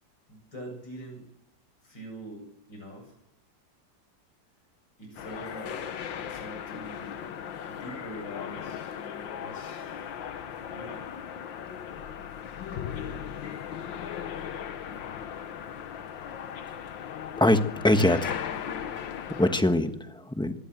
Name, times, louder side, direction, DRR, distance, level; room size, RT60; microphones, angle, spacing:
voice 1, 0.3-1.3 1.8-3.1 5.0-5.8 6.3-7.2 7.7-9.0 9.4-10.2 10.7-11.1 12.7-12.9, equal, 70° left, 3 dB, 8.5 m, -43 dB
sound 1, 5.2-19.6, left 8 dB, 90° left, 1.9 m, -37 dB
voice 2, 17.4-18.4 19.4-20.5, left 1 dB, 5° left, 7 dB, 1.1 m, -23 dB
24.0 x 18.5 x 7.9 m, 0.81 s
omnidirectional pair, 2.0 m